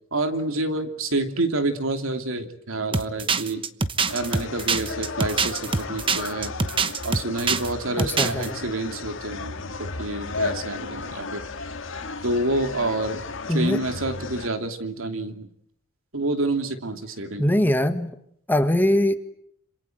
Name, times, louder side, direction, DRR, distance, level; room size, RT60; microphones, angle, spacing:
voice 1, 0.1-3.6 4.1-6.5 7.0-11.4 12.2-13.2 13.5-15.5 16.1-17.6, right 2 dB, 80° right, 7 dB, 2.9 m, -28 dB
sound 1, 2.9-7.7 8.0-8.5, right 4 dB, 25° right, 1.0 m, -24 dB
sound 2, 4.1-14.5, left 3 dB, 65° left, 1.9 m, -34 dB
voice 2, 8.0-8.6 13.5-13.8 17.4-18.1 18.5-19.1, left 1 dB, 10° left, 8 dB, 1.6 m, -22 dB
27.5 x 27.0 x 7.9 m, 0.70 s
head